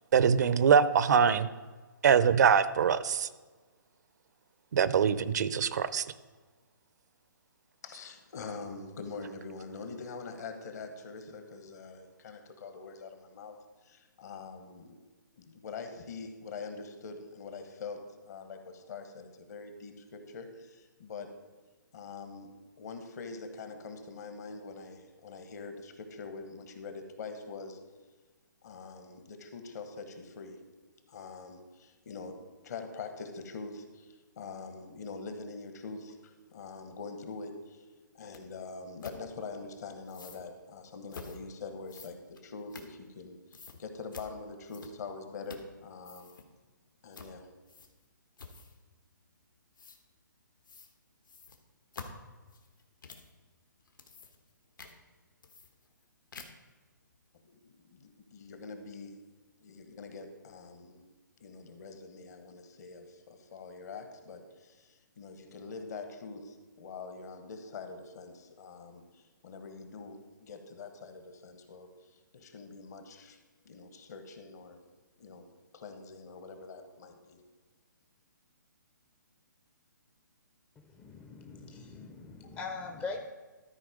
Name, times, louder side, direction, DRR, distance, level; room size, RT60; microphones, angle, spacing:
voice 1, 0.1-1.5 2.0-3.3 4.7-6.0, right 7 dB, 55° right, 14 dB, 0.5 m, -23 dB
voice 2, 7.8-13.6 13.8-15.0 15.4-21.3 21.9-22.5 22.8-27.8 28.6-30.6 31.1-32.4 32.6-37.9 38.1-46.4 47.0-47.5 57.4-59.2 59.6-61.1 61.4-73.4 73.6-74.8 75.2-75.4 75.7-77.4, left 4 dB, 55° left, 7 dB, 1.3 m, -44 dB
sound 1, 38.3-38.4 39.0-39.2 40.1-40.4 41.1-41.4 41.9-43.2 43.5-43.8 44.1-44.3 44.7-45.1 45.4-45.7 46.0-46.5 47.1-47.3 47.7-48.0 48.4-48.8 49.8-50.0 50.6-50.9 51.2-53.3 53.8-54.5 54.8-54.9 55.4-56.0 56.3-56.7, left 4 dB, 75° left, 1.3 m, -48 dB
voice 3, 80.9-83.3, left 4 dB, 10° left, 4 dB, 0.5 m, -41 dB
13.0 x 4.5 x 5.0 m, 1.3 s
hypercardioid pair, 140°, 11 cm